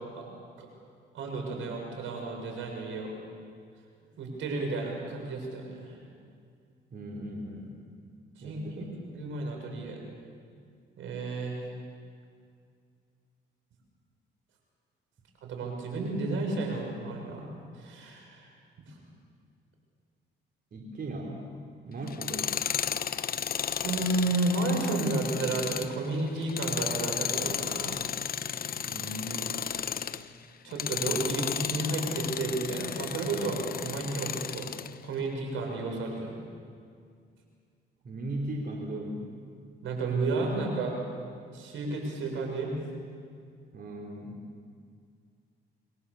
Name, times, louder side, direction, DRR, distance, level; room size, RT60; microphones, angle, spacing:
voice 1, 1.1-3.1 4.2-5.9 8.4-10.0 11.0-11.7 15.4-17.4 17.7-18.5 18.9-19.0 23.8-28.0 30.6-34.7 35.0-36.4 39.8-41.0 41.5-42.7, right 2 dB, 80° right, 1 dB, 6.9 m, -32 dB
voice 2, 6.9-7.8 8.4-9.0 20.7-21.5 21.9-22.6 28.9-29.7 38.0-39.3 43.7-44.4, right 1 dB, 50° right, -1 dB, 3.7 m, -38 dB
Tools, 22.1-30.3 30.7-34.9, left 8 dB, 50° left, 0.9 m, -33 dB
28.5 x 22.5 x 7.0 m, 2.2 s
cardioid pair, 90°, 20 cm